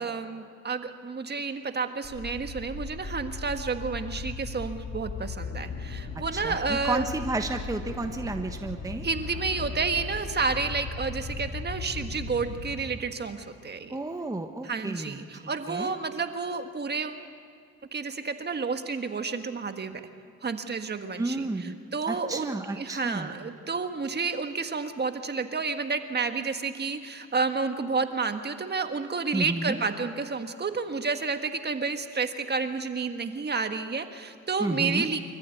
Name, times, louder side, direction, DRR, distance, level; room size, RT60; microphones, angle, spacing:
voice 1, 0.0-7.1 9.0-14.0 14.6-17.2 17.9-20.0 20.4-35.2, right 4 dB, 35° right, 7 dB, 1.6 m, -30 dB
sound 1, 2.0-12.7, left 3 dB, 55° left, 3.8 m, -37 dB
voice 2, 6.3-9.1 13.9-15.4 15.7-15.9 21.2-23.3 29.3-29.8 34.6-35.1, right 2 dB, 10° right, 5 dB, 1.3 m, -32 dB
25.5 x 14.5 x 9.3 m, 2.3 s
cardioid pair, 90°, 30 cm